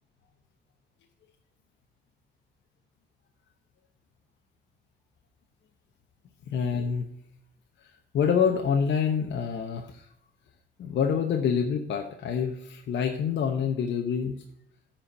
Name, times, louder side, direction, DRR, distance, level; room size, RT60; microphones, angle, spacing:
voice 1, 6.5-7.1 7.8-7.9 8.1-10.1 10.8-14.4, left 7 dB, 65° left, 3 dB, 1.0 m, -26 dB
9.8 x 4.5 x 6.5 m, 0.76 s
cardioid pair, 90°, 20 cm